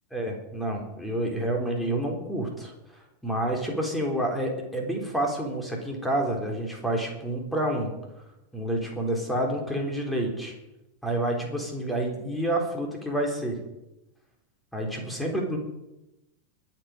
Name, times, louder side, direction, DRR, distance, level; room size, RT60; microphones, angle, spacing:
voice 1, 0.1-2.7 3.2-7.9 8.5-10.5 11.0-13.6 14.7-15.6, right 1 dB, 5° left, 1 dB, 3.8 m, -28 dB
23.0 x 7.8 x 5.2 m, 0.93 s
figure-of-eight pair, 90°, 0 cm